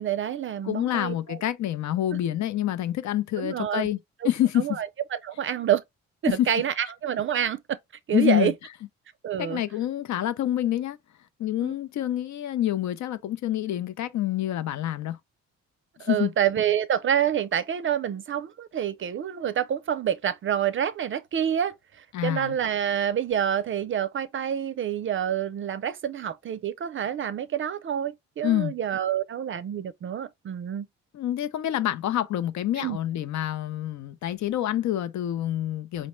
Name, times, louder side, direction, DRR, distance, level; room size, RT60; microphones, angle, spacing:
voice 1, 0.0-1.4 3.4-3.9 4.2-4.3 4.6-4.9 5.2-5.8 6.2-7.8 8.1-8.5 9.2-9.6 11.6-11.7 16.0-30.9 32.8-33.0, right 9 dB, 40° right, 0.4 m, -27 dB
voice 2, 0.6-4.0 4.2-4.8 6.3-6.5 8.1-8.5 9.4-11.0 11.4-15.2 16.0-16.3 22.1-22.6 28.4-28.7 31.1-36.1, left 12 dB, 65° left, 0.6 m, -27 dB
5.2 x 2.1 x 3.0 m
cardioid pair, 90°, 30 cm